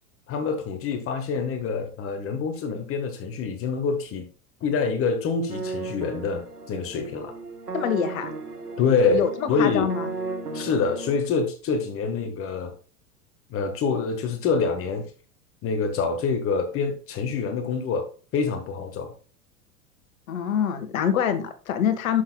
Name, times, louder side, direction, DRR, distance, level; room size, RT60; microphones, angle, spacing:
voice 1, 0.3-4.3 4.6-7.3 8.8-9.9 10.5-12.7 13.5-15.1 15.6-19.1, left 5 dB, 30° left, 6 dB, 1.3 m, -26 dB
sound 1, 5.5-11.1, right 3 dB, 85° right, 1.4 m, -35 dB
voice 2, 7.7-8.3 9.0-10.1 20.3-22.2, left 8 dB, 60° left, 10 dB, 1.4 m, -25 dB
11.5 x 6.5 x 2.2 m, 0.39 s
figure-of-eight pair, 90°, 46 cm